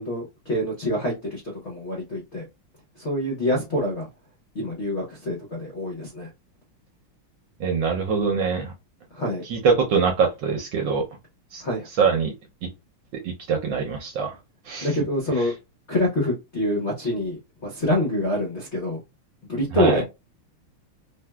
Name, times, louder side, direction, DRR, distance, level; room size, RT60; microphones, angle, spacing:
voice 1, 0.0-2.4 3.0-4.1 4.5-6.3 9.1-9.4 11.6-11.9 14.8-15.5 15.9-19.0 19.5-20.1, left 1 dB, 65° left, 0.6 m, -26 dB
voice 2, 7.6-8.7 9.5-11.0 11.5-11.6 12.0-12.3 13.2-14.3 14.7-14.9 19.8-20.0, right 5 dB, 70° right, 1.2 m, -23 dB
3.4 x 2.6 x 2.2 m
omnidirectional pair, 2.4 m